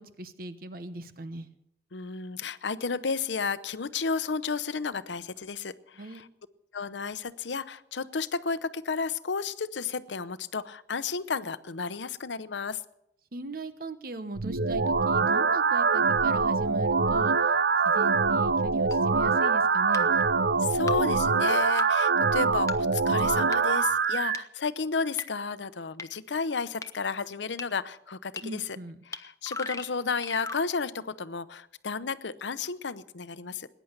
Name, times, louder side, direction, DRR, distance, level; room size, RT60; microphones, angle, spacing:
voice 1, 0.0-1.5 6.0-6.2 13.3-17.5 17.8-20.2 28.4-29.0, right 2 dB, 55° right, 12 dB, 1.0 m, -39 dB
voice 2, 1.9-6.3 6.7-12.8 20.6-28.8 29.1-33.7, left 5 dB, 90° left, 15 dB, 0.8 m, -32 dB
sound 1, 14.4-24.4, right 4 dB, 70° right, 0.6 m, -24 dB
sound 2, 18.9-19.0 19.9-20.0 20.9-21.0 21.8-21.9 22.7-22.8 23.5-23.6 24.3-24.4 25.2-25.3 26.0-26.1 26.8-26.9 27.6-27.7 28.4-28.5 29.1-29.2 29.4-30.6, left 3 dB, 15° left, 0.7 m, -35 dB
20.0 x 10.0 x 6.7 m, 0.79 s
head